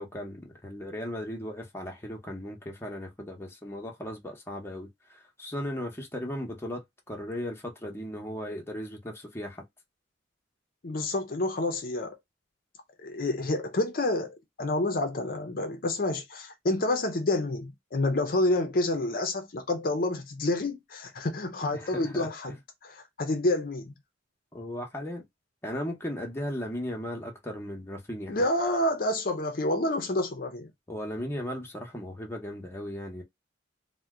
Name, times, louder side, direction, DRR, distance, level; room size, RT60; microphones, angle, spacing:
voice 1, 0.0-9.7 21.7-22.6 24.5-25.2 25.6-28.5 30.9-33.2, equal, 15° left, 0.8 m, -37 dB
voice 2, 10.8-12.2 13.0-22.5 22.8-23.9 28.3-30.7, left 2 dB, 50° left, 0.6 m, -28 dB
2.7 x 2.2 x 3.5 m
head